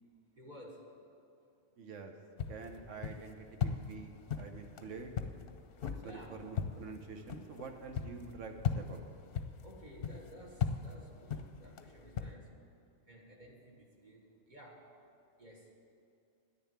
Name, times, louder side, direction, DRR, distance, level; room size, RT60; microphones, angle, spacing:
voice 1, 0.3-1.1 6.0-6.4 9.6-12.7 13.1-15.0 15.4-15.7, right 1 dB, 40° right, -2 dB, 1.4 m, -54 dB
voice 2, 1.8-2.1 2.5-5.2 5.8-9.1, right 4 dB, 90° right, 5 dB, 1.3 m, -47 dB
sound 1, 2.4-12.3, left 7 dB, 55° left, 0.8 m, -39 dB
10.0 x 6.9 x 8.8 m, 2.6 s
omnidirectional pair, 1.2 m